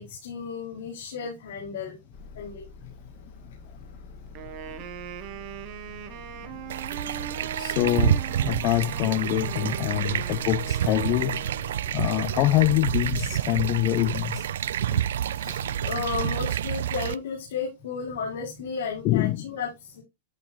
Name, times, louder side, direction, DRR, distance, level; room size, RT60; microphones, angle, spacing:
voice 1, 0.0-2.0 2.3-2.6 15.6-20.0, left 5 dB, 65° left, 5.1 m, -33 dB
sound 1, 2.1-16.4, left 4 dB, 45° left, 3.0 m, -47 dB
Wind instrument woodwind instrument, 4.3-12.0, right 10 dB, 30° right, 1.1 m, -40 dB
sound 2, 6.7-17.2, right 11 dB, 75° right, 0.3 m, -28 dB
voice 2, 7.6-11.4 11.9-14.4 14.9-15.1 15.4-15.6 19.0-19.5, left 16 dB, 30° left, 0.4 m, -25 dB
13.0 x 4.6 x 3.1 m
supercardioid pair, 175°, 0 cm